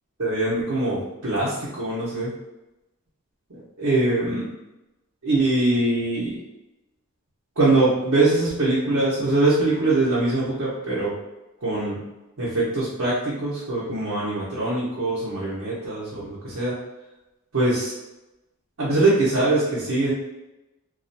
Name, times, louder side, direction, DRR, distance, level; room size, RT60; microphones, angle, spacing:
voice 1, 0.2-2.3 3.5-4.5 5.2-6.4 7.6-11.2 11.6-12.0 12.4-16.8 17.5-17.9 18.8-20.1, right 2 dB, 80° right, -9 dB, 0.7 m, -23 dB
2.4 x 2.1 x 2.6 m, 0.98 s
head